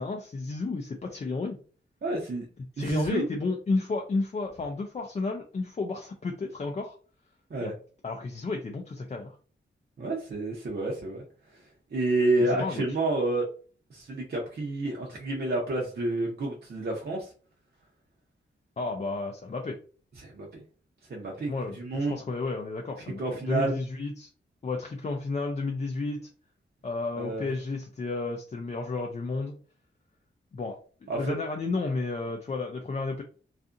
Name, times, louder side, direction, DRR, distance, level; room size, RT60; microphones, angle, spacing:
voice 1, 0.0-1.6 2.8-6.9 7.6-7.7 8.0-9.4 12.4-12.8 18.8-19.8 21.5-24.3 24.6-26.3 26.8-29.5 30.5-30.8 31.2-33.2, left 3 dB, 35° left, 2 dB, 0.4 m, -32 dB
voice 2, 2.0-2.5 2.8-3.3 7.5-7.7 10.0-11.2 11.9-13.5 13.9-17.3 20.2-20.6 21.1-22.2 23.2-23.8 27.2-27.5 31.1-31.3, right 2 dB, 55° right, -1 dB, 0.6 m, -29 dB
2.6 x 2.4 x 2.4 m, 0.40 s
wide cardioid pair, 115°, 20 cm